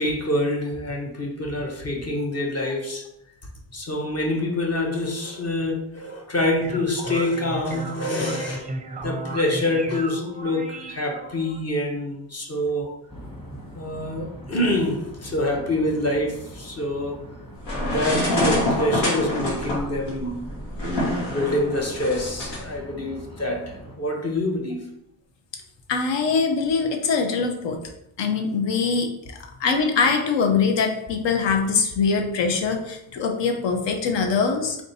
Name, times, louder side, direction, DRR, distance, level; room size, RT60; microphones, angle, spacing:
voice 1, 0.0-3.1 3.7-8.6 9.0-12.9 13.7-17.1 17.8-20.5 21.3-24.9, left 1 dB, 35° left, 2 dB, 0.7 m, -26 dB
sound 1, 6.6-11.6, right 2 dB, 20° right, 0.5 m, -35 dB
sound 2, 13.1-24.0, equal, 10° left, 1.1 m, -42 dB
sound 3, 17.6-22.6, left 1 dB, 90° left, 1.4 m, -26 dB
voice 2, 25.9-27.8 28.2-29.1 29.6-34.8, left 5 dB, 70° left, 4 dB, 0.8 m, -23 dB
3.5 x 2.6 x 4.1 m, 0.82 s
cardioid pair, 80°, 45 cm